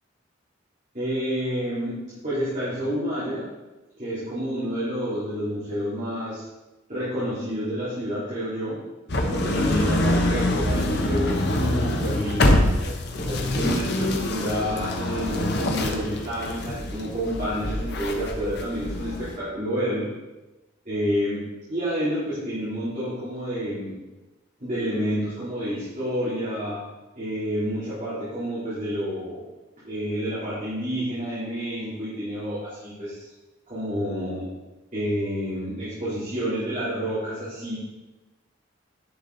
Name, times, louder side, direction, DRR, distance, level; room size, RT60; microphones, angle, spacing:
voice 1, 0.9-3.5 4.0-6.4 6.9-8.8 9.3-12.6 13.2-20.1 20.9-21.4 21.7-24.0 24.6-26.8 27.2-29.4 29.8-33.3 33.7-34.4 34.9-37.8, equal, 40° right, -11 dB, 3.5 m, -29 dB
sound 1, 9.1-19.4, left 1 dB, 55° left, 1.1 m, -25 dB
11.0 x 6.0 x 4.1 m, 1.1 s
head